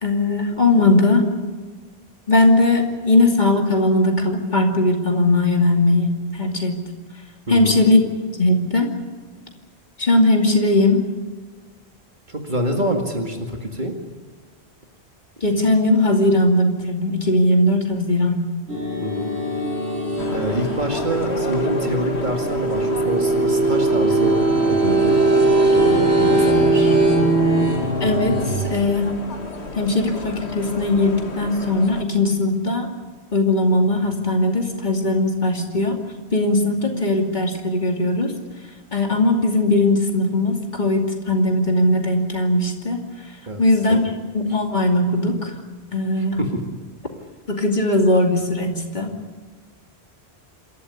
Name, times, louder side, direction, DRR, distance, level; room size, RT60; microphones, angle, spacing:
voice 1, 0.0-1.3 2.3-6.8 7.5-8.0 8.4-8.9 10.0-11.0 15.4-18.4 28.0-29.1 29.7-32.9 33.3-36.0 36.3-38.3 38.9-43.0 43.6-44.0 44.3-45.5 45.9-46.4 47.5-49.1, left 2 dB, 45° left, 2 dB, 2.8 m, -19 dB
voice 2, 7.5-7.8 12.3-13.9 19.0-19.3 20.3-24.4 24.7-25.2 25.7-27.0 43.5-43.6 43.9-44.1 46.4-46.5, right 1 dB, 45° right, 2 dB, 2.3 m, -26 dB
sound 1, 18.7-28.7, right 2 dB, 85° right, 6.6 m, -20 dB
sound 2, 20.2-32.0, left 3 dB, 90° left, 2.0 m, -32 dB
27.5 x 13.5 x 9.8 m, 1.4 s
omnidirectional pair, 1.1 m